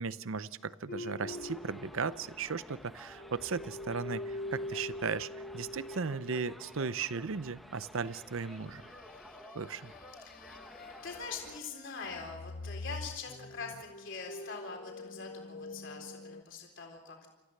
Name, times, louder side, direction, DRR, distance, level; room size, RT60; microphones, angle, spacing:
voice 1, 0.0-8.8 9.5-9.9, right 5 dB, 65° right, 16 dB, 0.7 m, -36 dB
sound 1, 0.9-2.8 3.1-6.9 8.6-11.8 12.1-16.4, left 2 dB, 40° left, 0.6 m, -44 dB
Subway metro underground, 1.3-11.6, equal, ahead, 1.0 m, -53 dB
voice 2, 11.0-17.2, left 4 dB, 55° left, 1 dB, 3.9 m, -43 dB
29.5 x 15.0 x 6.6 m, 1.1 s
head